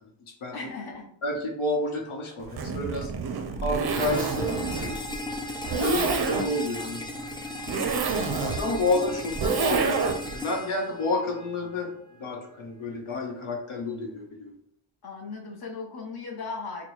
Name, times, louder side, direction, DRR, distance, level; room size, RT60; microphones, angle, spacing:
voice 1, 0.5-1.1 15.0-16.9, left 4 dB, 50° left, 0 dB, 0.8 m, -37 dB
voice 2, 1.2-3.1 3.6-5.3 5.8-7.0 8.2-10.0 10.3-11.9 12.2-14.5, left 2 dB, 75° left, 1 dB, 0.9 m, -30 dB
Zipper (clothing), 2.4-10.4, right 5 dB, 55° right, 0.5 m, -29 dB
sound 1, 3.8-11.8, left 1 dB, 10° left, 0.3 m, -36 dB
4.3 x 2.2 x 3.1 m, 0.67 s
wide cardioid pair, 125°, 49 cm